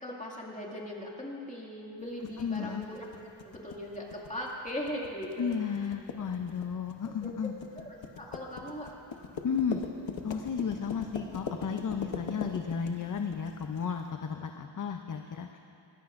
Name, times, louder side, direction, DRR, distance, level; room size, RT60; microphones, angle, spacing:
voice 1, 0.0-3.1 3.4-5.9 7.2-7.5 7.8-8.9, left 1 dB, 15° left, -3 dB, 2.1 m, -39 dB
sound 1, 2.3-13.8, left 5 dB, 65° left, 1.0 m, -41 dB
voice 2, 2.4-2.9 5.4-7.5 9.4-9.8 10.2-15.6, left 6 dB, 40° left, 5 dB, 0.5 m, -33 dB
21.0 x 15.5 x 2.5 m, 2.7 s
wide cardioid pair, 125°, 49 cm